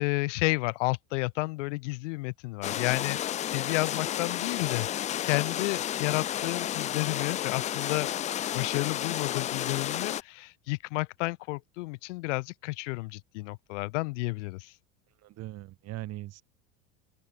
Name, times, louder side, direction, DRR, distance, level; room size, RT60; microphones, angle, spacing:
voice 1, 0.0-3.2 3.5-8.1 8.5-14.7, left 23 dB, 85° left, 1.3 m, -31 dB
sound 1, 2.6-10.2, left 11 dB, 20° left, 0.4 m, -32 dB
voice 2, 15.2-16.4, right 16 dB, 45° right, 4.2 m, -40 dB
open air
supercardioid pair, 150°, 36 cm